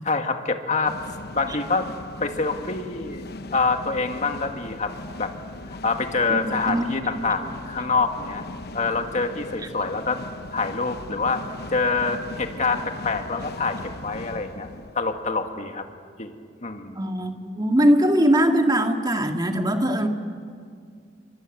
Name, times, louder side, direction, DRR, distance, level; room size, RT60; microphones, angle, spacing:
voice 1, 0.0-1.0 1.3-1.9 2.2-3.2 3.5-5.3 5.7-8.4 8.7-10.2 10.5-11.4 11.7-14.7 14.9-15.9 16.2-16.3 16.6-17.0, left 4 dB, 40° left, 5 dB, 2.0 m, -26 dB
sound 1, 0.8-15.6, left 2 dB, 55° left, 1.0 m, -39 dB
voice 2, 6.3-6.8 17.0-20.1, equal, 20° right, 4 dB, 1.9 m, -21 dB
28.5 x 25.0 x 7.9 m, 2.1 s
head